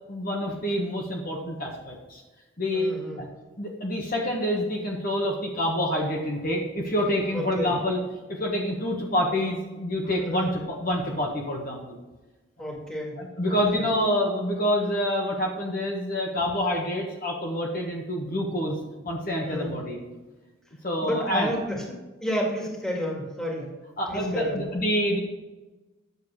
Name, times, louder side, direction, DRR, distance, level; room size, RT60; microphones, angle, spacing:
voice 1, 0.1-2.2 2.6-3.3 3.6-8.0 8.3-11.9 13.2-18.8 19.0-20.0 20.8-21.5 24.0-25.2, equal, 40° left, -1 dB, 1.3 m, -27 dB
voice 2, 2.7-3.2 7.3-7.7 10.2-10.5 12.6-13.2 13.5-13.8 19.5-19.8 21.0-23.7 24.1-24.6, equal, 5° left, -2 dB, 1.9 m, -31 dB
9.5 x 7.0 x 4.8 m, 1.2 s
head